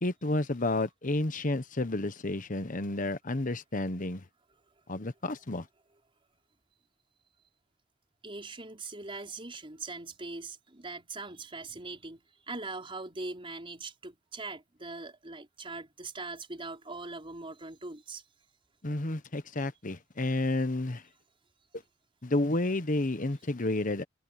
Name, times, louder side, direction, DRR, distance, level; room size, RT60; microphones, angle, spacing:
voice 1, 0.0-4.2 4.9-5.6 18.8-21.0 22.2-24.0, left 2 dB, 45° left, 1.2 m, -31 dB
voice 2, 8.2-18.2, right 3 dB, 30° right, 4.7 m, -41 dB
head